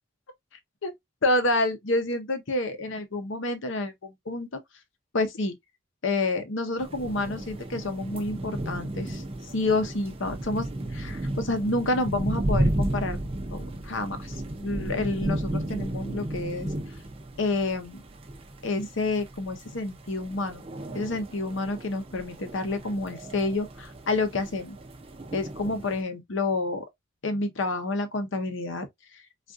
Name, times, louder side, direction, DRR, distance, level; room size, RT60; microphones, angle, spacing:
voice 1, 1.2-4.6 5.1-5.5 6.0-9.3 9.5-16.7 17.4-18.0 18.6-20.6 20.9-24.8 25.3-26.8 27.2-28.9 29.1-29.2, left 2 dB, 60° left, 0.7 m, -29 dB
sound 1, 6.8-26.0, right 1 dB, 25° right, 0.5 m, -34 dB
3.5 x 2.4 x 2.4 m
head